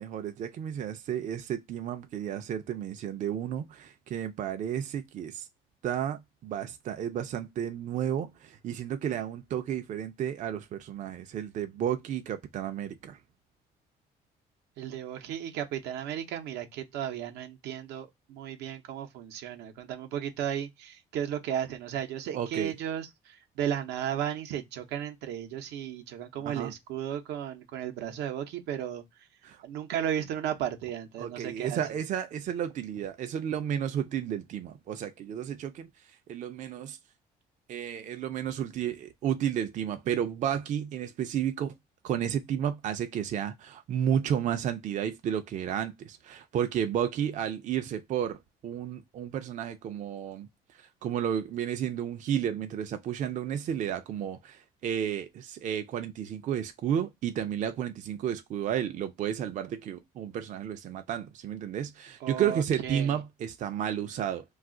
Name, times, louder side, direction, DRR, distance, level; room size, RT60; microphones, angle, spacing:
voice 1, 0.0-5.5 5.8-13.2 22.3-22.7 26.4-26.7 29.4-29.6 31.2-35.9 36.3-37.0 37.7-41.7 42.0-50.5 50.8-64.4, right 9 dB, 50° right, 0.4 m, -32 dB
voice 2, 14.8-29.0 29.6-31.8 62.2-63.2, right 10 dB, 85° right, 0.7 m, -34 dB
2.4 x 2.3 x 3.6 m
cardioid pair, 110°, 17 cm